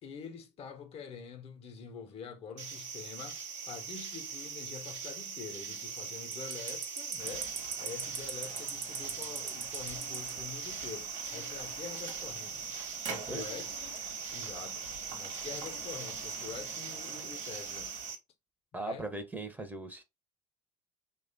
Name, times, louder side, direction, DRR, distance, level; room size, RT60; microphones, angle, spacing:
voice 1, 0.0-12.7 13.0-14.0 14.3-18.0 18.7-19.1, left 6 dB, 40° left, 0.5 m, -46 dB
sound 1, 2.6-18.2, right 6 dB, 80° right, 0.7 m, -40 dB
sound 2, 7.2-18.1, right 4 dB, 55° right, 1.1 m, -48 dB
sound 3, 9.6-16.7, left 6 dB, 85° left, 0.6 m, -57 dB
voice 2, 18.7-20.0, right 2 dB, 10° right, 0.6 m, -39 dB
3.1 x 2.2 x 2.5 m
hypercardioid pair, 70°, 16 cm